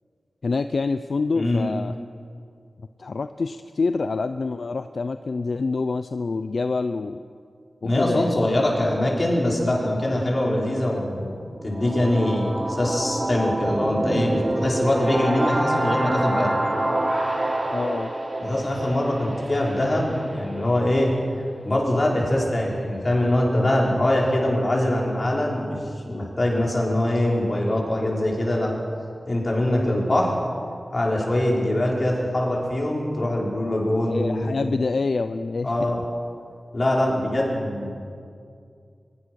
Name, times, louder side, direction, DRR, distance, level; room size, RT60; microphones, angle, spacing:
voice 1, 0.4-2.0 3.0-7.2 7.8-8.4 17.7-18.1 18.5-18.6 34.1-35.9, left 4 dB, 70° left, 10 dB, 0.6 m, -26 dB
voice 2, 1.3-1.6 7.8-16.6 18.4-21.2 21.6-25.8 26.1-28.8 29.3-30.4 30.9-34.6 35.6-36.0 36.7-37.9, left 1 dB, 40° left, -2 dB, 5.6 m, -23 dB
sound 1, 11.5-21.4, right 1 dB, 30° right, 4.3 m, -27 dB
23.5 x 22.0 x 6.5 m, 2.3 s
wide cardioid pair, 85°, 0 cm